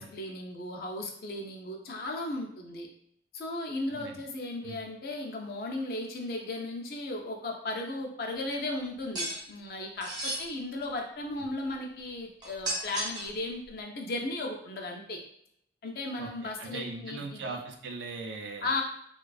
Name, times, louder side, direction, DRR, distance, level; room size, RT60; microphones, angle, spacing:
voice 1, 0.0-2.9 3.3-15.2 15.8-17.6 18.6-18.8, left 2 dB, 55° left, 1 dB, 0.4 m, -36 dB
sound 1, 9.2-9.4 10.0-10.4 12.4-13.3, right 1 dB, 25° right, 0.5 m, -33 dB
voice 2, 16.6-18.7, right 3 dB, 80° right, 3 dB, 0.4 m, -39 dB
2.4 x 2.3 x 2.3 m, 0.72 s
head